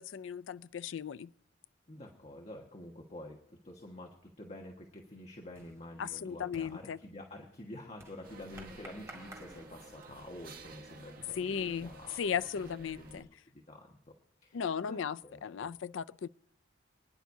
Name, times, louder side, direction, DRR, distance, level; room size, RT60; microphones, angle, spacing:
voice 1, 0.0-1.3 6.0-7.0 11.4-11.9 12.2-13.3 14.5-16.3, left 7 dB, 80° left, 0.4 m, -36 dB
voice 2, 1.9-12.2 12.6-13.3 13.5-14.1 14.4-15.7, left 1 dB, 35° left, 1.5 m, -49 dB
sound 1, 4.8-10.4, right 2 dB, 15° right, 2.1 m, -56 dB
sound 2, 8.2-13.2, right 3 dB, 50° right, 1.4 m, -52 dB
26.0 x 10.5 x 2.7 m
head